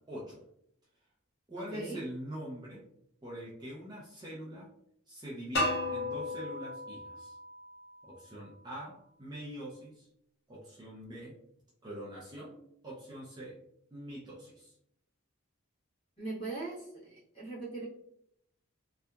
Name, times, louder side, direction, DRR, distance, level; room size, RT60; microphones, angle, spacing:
voice 1, 0.1-0.4 1.5-2.8 3.2-4.7 5.1-7.4 8.0-10.1 10.5-11.3 11.8-13.6 13.9-14.7, equal, 20° right, -6 dB, 0.4 m, -44 dB
voice 2, 1.6-2.0 16.2-17.9, right 3 dB, 25° left, -7 dB, 1.1 m, -40 dB
sound 1, 5.6-8.5, left 1 dB, 50° left, 0.5 m, -35 dB
2.7 x 2.2 x 2.2 m, 0.74 s
head